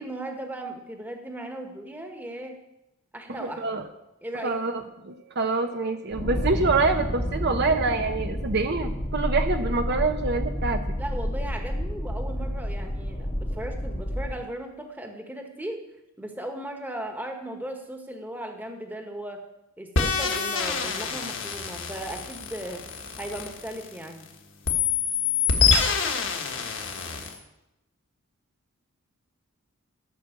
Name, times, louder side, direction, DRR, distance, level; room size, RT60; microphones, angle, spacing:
voice 1, 0.0-2.5 3.1-3.8 4.2-4.6 11.0-13.3 13.5-15.8 16.2-19.4 19.8-22.8 23.2-24.3, right 1 dB, 10° right, 4 dB, 1.2 m, -37 dB
voice 2, 3.3-3.8 4.4-10.8, right 3 dB, 50° right, 6 dB, 0.7 m, -26 dB
sound 1, 6.1-14.4, equal, 25° left, 1.1 m, -30 dB
sound 2, 20.0-24.2 24.7-27.4, left 5 dB, 60° left, 1.5 m, -26 dB
13.0 x 6.1 x 7.3 m, 0.90 s
head